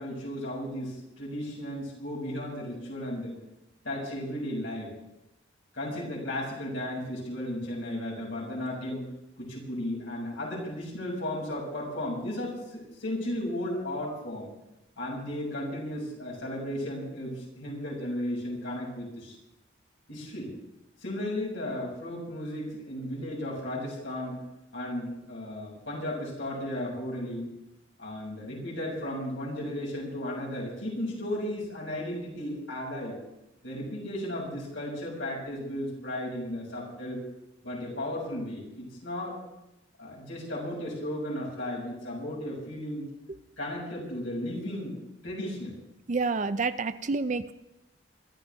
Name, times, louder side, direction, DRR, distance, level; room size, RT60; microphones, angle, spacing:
voice 1, 0.0-3.3 3.8-4.9 5.7-9.1 9.4-14.5 15.0-19.4 20.1-20.5 21.0-24.4 24.7-27.5 28.0-33.2 33.6-37.2 37.6-39.4 40.0-43.1 43.6-45.0 45.2-45.7, left 1 dB, 90° left, -4 dB, 6.6 m, -35 dB
voice 2, 46.1-47.5, right 4 dB, 40° right, 11 dB, 0.5 m, -28 dB
24.5 x 13.5 x 3.5 m, 0.91 s
head